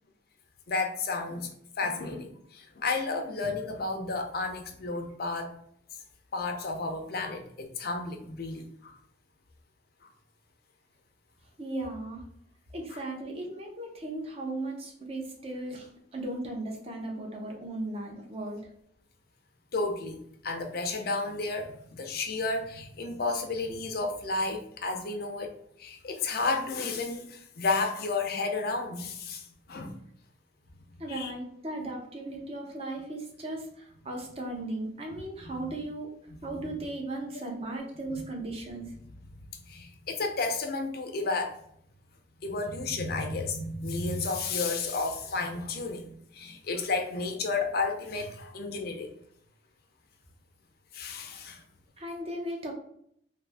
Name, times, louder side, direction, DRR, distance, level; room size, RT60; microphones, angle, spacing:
voice 1, 0.7-1.5 1.8-5.5 6.3-8.9 12.9-13.0 19.7-25.5 25.8-30.0 31.1-31.3 35.4-35.8 36.4-36.8 39.7-41.6 42.4-49.1 50.9-51.6, left 3 dB, 55° left, 4 dB, 0.5 m, -32 dB
voice 2, 11.6-12.2 12.7-18.6 31.0-36.1 36.4-38.9 52.0-52.7, right 2 dB, 35° right, 0 dB, 0.7 m, -36 dB
2.6 x 2.5 x 3.4 m, 0.68 s
head